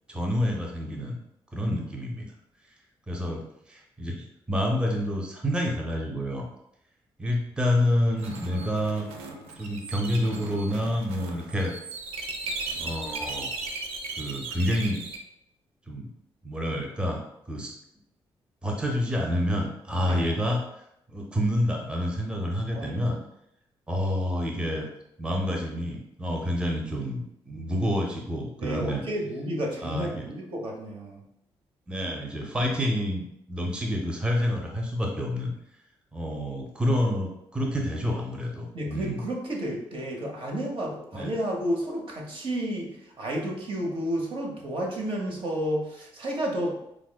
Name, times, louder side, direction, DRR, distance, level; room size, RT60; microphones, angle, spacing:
voice 1, 0.1-1.2 1.5-2.3 3.1-6.5 7.2-9.1 9.6-11.8 12.7-13.5 14.2-15.0 15.9-16.1 16.4-17.7 18.6-20.6 21.1-23.2 23.9-24.9 25.2-29.0 29.8-30.3 31.9-35.5 36.1-39.2 41.1-41.3, equal, 10° right, 0 dB, 0.5 m, -28 dB
sound 1, 8.2-15.2, right 3 dB, 85° right, 0.4 m, -37 dB
voice 2, 28.6-31.2 38.7-46.8, equal, 60° right, 0 dB, 0.9 m, -31 dB
4.5 x 2.0 x 2.2 m, 0.79 s
cardioid pair, 65°, 10 cm